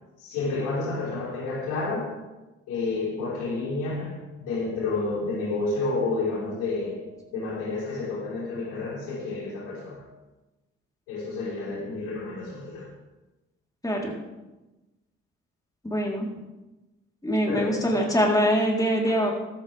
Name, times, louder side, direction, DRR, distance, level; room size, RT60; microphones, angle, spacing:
voice 1, 0.2-2.2 2.7-10.1 11.1-12.9 17.5-18.0 19.1-19.3, left 3 dB, 85° left, -7 dB, 5.2 m, -30 dB
voice 2, 13.8-14.1 15.8-16.3 17.2-19.3, equal, 10° left, -2 dB, 4.1 m, -23 dB
14.5 x 12.5 x 3.6 m, 1.1 s
hypercardioid pair, 50°, 30 cm